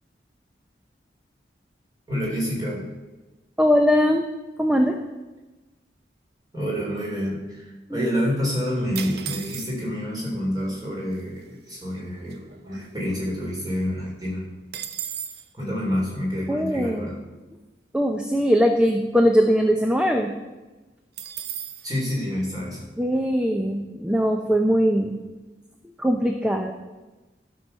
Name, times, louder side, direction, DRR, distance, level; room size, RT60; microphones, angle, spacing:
voice 1, 2.1-2.9 6.5-14.5 15.6-17.2 21.8-22.9, equal, 20° right, -4 dB, 3.5 m, -28 dB
voice 2, 3.6-4.3 4.6-5.0 7.9-8.1 16.5-17.1 17.9-20.3 23.0-25.2 26.0-26.7, equal, 5° right, 4 dB, 0.6 m, -21 dB
sound 1, 9.0-10.0 10.8-10.9 11.1-11.5 11.9-13.4 13.7-13.8 14.1-15.5 21.2-21.9, right 9 dB, 65° right, 0.7 m, -36 dB
12.5 x 6.3 x 5.5 m, 1.2 s
head